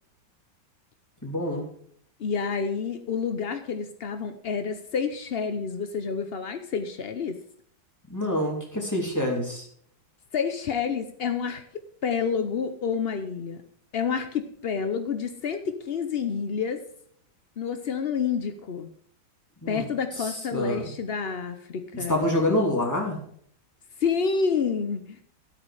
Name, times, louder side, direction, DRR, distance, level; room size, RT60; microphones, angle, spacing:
voice 1, 1.2-1.7 8.1-9.7 19.6-19.9 20.2-20.9 21.9-23.2, left 1 dB, 10° left, 0 dB, 2.7 m, -27 dB
voice 2, 2.2-7.4 10.3-13.6 13.9-16.8 17.6-18.9 19.7-22.2 24.0-25.2, left 6 dB, 75° left, 8 dB, 0.5 m, -29 dB
13.5 x 8.4 x 4.9 m, 0.63 s
omnidirectional pair, 2.1 m